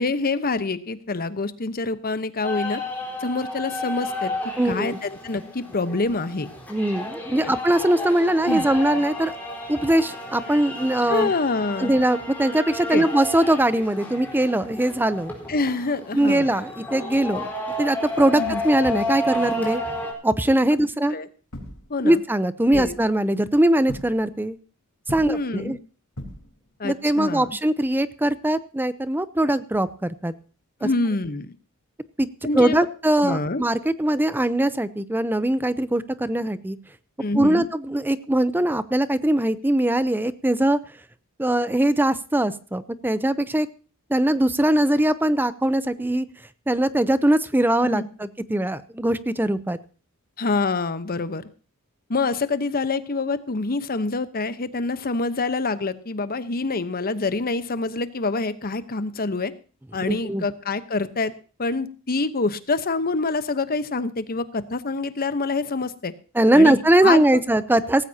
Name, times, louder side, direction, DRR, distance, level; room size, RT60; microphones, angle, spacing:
voice 1, 0.0-2.8 3.2-4.3 4.6-6.5 7.4-7.5 8.5-8.7 11.1-11.9 12.9-13.1 15.5-16.5 18.4-18.6 21.1-21.3 21.9-22.2 22.7-22.9 25.2-25.8 26.8-27.6 30.8-31.5 32.4-32.9 33.2-33.6 37.2-37.7 47.8-48.1 50.4-51.4 52.1-59.5 59.9-61.3 61.6-66.1 66.5-67.4, left 3 dB, 45° left, 12 dB, 1.0 m, -26 dB
sound 1, 2.4-20.1, left 1 dB, 10° left, 4.2 m, -32 dB
voice 2, 4.6-5.0 6.7-9.3 9.7-11.3 11.8-15.3 16.1-17.5 17.8-19.8 20.2-21.2 22.0-24.6 25.1-25.8 26.8-30.3 30.8-30.9 32.2-32.3 32.5-36.8 37.3-40.8 41.4-43.7 44.1-46.3 46.7-49.8 60.1-60.4 66.3-68.0, right 1 dB, 10° right, 14 dB, 0.6 m, -21 dB
sound 2, 21.5-22.3 22.7-23.4 23.9-24.4 25.0-25.7 26.2-26.8 27.9-28.1 30.1-30.2, equal, 75° left, 4.0 m, -39 dB
18.0 x 15.0 x 2.8 m, 0.37 s
head